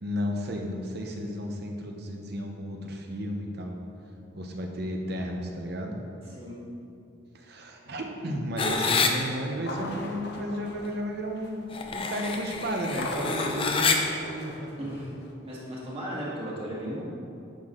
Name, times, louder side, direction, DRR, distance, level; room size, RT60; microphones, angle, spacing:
voice 1, 0.0-3.8 4.4-6.0 7.3-11.6 11.9-14.7, equal, 55° right, 2 dB, 0.9 m, -33 dB
sound 1, 8.6-9.1 11.7-14.0, left 4 dB, 25° left, 0.5 m, -27 dB
sound 2, 9.5-11.8 12.8-15.3, left 2 dB, 55° left, 0.8 m, -40 dB
voice 2, 14.8-15.1 15.4-17.0, equal, 30° right, -6 dB, 1.8 m, -35 dB
10.0 x 6.2 x 3.8 m, 2.6 s
head